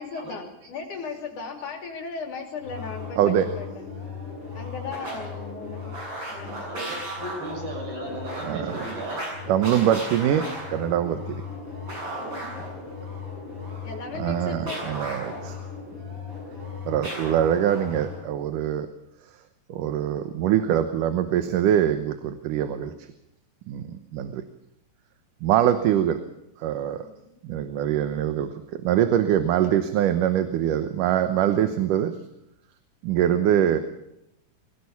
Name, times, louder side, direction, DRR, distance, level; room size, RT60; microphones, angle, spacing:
voice 1, 0.0-3.9 4.5-6.0 6.3-6.7 12.2-12.7 13.8-14.8 27.0-27.3, left 4 dB, 60° left, 3 dB, 4.4 m, -37 dB
sound 1, 2.6-18.2, left 2 dB, 30° right, 8.8 m, -36 dB
voice 2, 3.2-3.5 8.4-8.8 9.5-11.4 14.2-15.5 16.9-18.9 19.7-22.9 23.7-24.4 25.4-26.2 26.6-27.1 27.4-32.2 33.0-33.8, right 10 dB, 75° right, 9 dB, 2.5 m, -23 dB
voice 3, 6.7-9.2 9.7-9.9, right 1 dB, 90° right, 1 dB, 9.0 m, -36 dB
22.0 x 17.5 x 7.1 m, 0.82 s
omnidirectional pair, 4.0 m